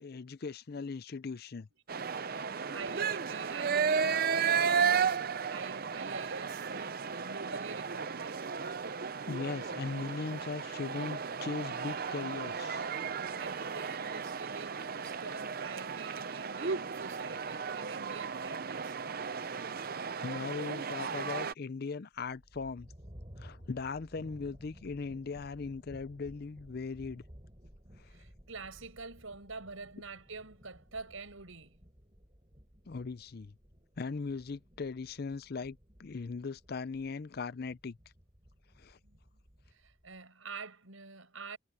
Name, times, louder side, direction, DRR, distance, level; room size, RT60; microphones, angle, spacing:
voice 1, 0.0-1.7 2.3-2.4 9.3-12.9 20.2-22.9 23.4-27.2 28.0-28.1 32.9-33.5 34.0-38.0 38.8-39.0, left 4 dB, 45° left, 0.5 m, -39 dB
sound 1, 1.9-21.5, right 6 dB, 45° right, 0.6 m, -34 dB
voice 2, 2.0-5.2 5.5-8.5 13.1-19.0 28.1-31.8 39.0-39.2 39.7-41.6, right 4 dB, 75° right, 5.5 m, -46 dB
sound 2, 22.1-40.2, equal, 25° right, 3.6 m, -56 dB
head